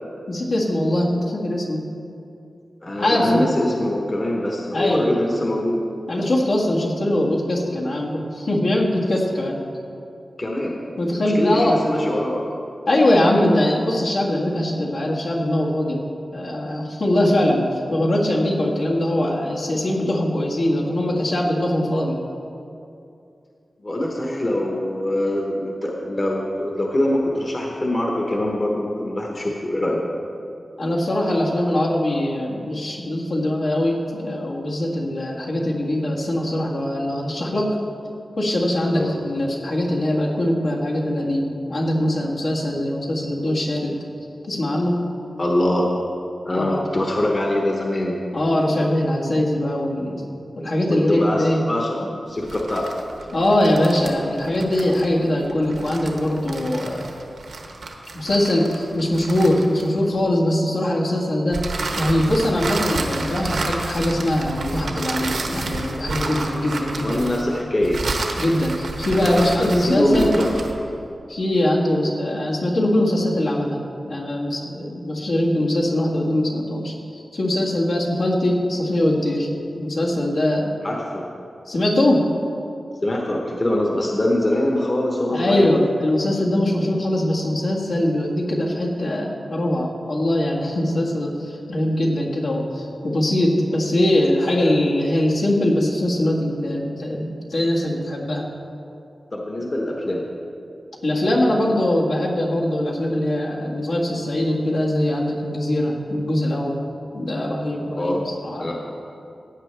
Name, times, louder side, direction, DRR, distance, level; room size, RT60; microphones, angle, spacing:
voice 1, 0.3-1.9 3.0-3.4 4.7-5.1 6.1-9.6 11.0-11.8 12.9-16.0 16.3-22.2 30.8-37.8 38.4-44.0 44.5-45.0 46.5-46.9 48.3-50.2 50.6-51.6 53.3-57.0 58.1-61.6 62.0-67.2 68.4-70.3 71.3-73.8 74.0-79.5 79.7-80.7 81.7-82.3 85.3-98.4 101.0-106.8 107.1-108.7, left 1 dB, 75° left, -4 dB, 1.8 m, -22 dB
voice 2, 2.8-5.8 10.4-10.8 11.2-12.4 23.8-30.0 38.9-39.1 45.4-45.9 46.4-48.2 51.1-52.9 67.0-68.0 69.1-70.5 80.8-81.3 83.0-85.7 99.3-100.3 107.9-108.2 108.6-108.8, left 1 dB, 35° left, -1 dB, 1.1 m, -23 dB
sound 1, 52.4-60.2 61.5-70.8, right 3 dB, 90° right, 1.1 m, -30 dB
16.0 x 8.8 x 3.4 m, 2.6 s
wide cardioid pair, 115°, 0 cm